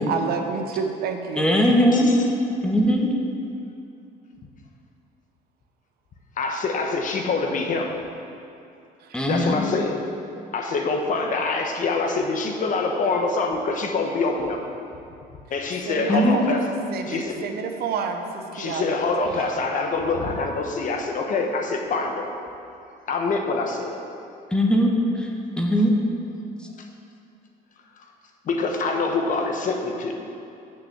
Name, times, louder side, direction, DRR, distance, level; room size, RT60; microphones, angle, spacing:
voice 1, 0.1-1.4 9.0-9.2 15.9-16.6 16.9-19.0, right 6 dB, 70° right, 5 dB, 0.8 m, -29 dB
voice 2, 1.4-2.1 2.6-3.1 9.1-9.7 16.1-16.4 24.5-25.3 25.6-25.9, equal, 5° left, 0 dB, 1.2 m, -20 dB
voice 3, 6.4-8.0 9.3-10.0 10.5-14.6 15.5-16.7 17.1-17.5 18.5-22.3 23.1-24.0 26.8-26.9 28.0-28.1 28.4-30.1, left 3 dB, 50° left, 3 dB, 1.0 m, -25 dB
6.7 x 5.9 x 7.3 m, 2.7 s
cardioid pair, 110°, 17 cm